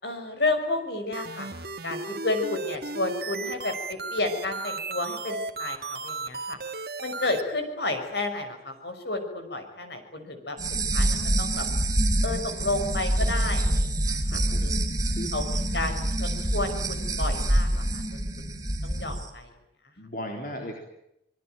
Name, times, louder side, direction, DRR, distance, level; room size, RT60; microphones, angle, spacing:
voice 1, 0.0-1.5 1.8-6.6 7.0-10.6 10.9-11.7 12.2-14.8 15.3-18.2 18.8-19.5, left 2 dB, 70° left, 6 dB, 5.9 m, -31 dB
sound 1, 1.1-7.4, right 3 dB, 60° right, 2.0 m, -35 dB
sound 2, 10.6-19.2, right 1 dB, 20° right, 3.0 m, -26 dB
voice 2, 14.3-14.7 15.1-15.3 20.0-20.8, left 1 dB, 50° left, 2 dB, 3.9 m, -36 dB
26.0 x 21.5 x 9.2 m, 0.82 s
head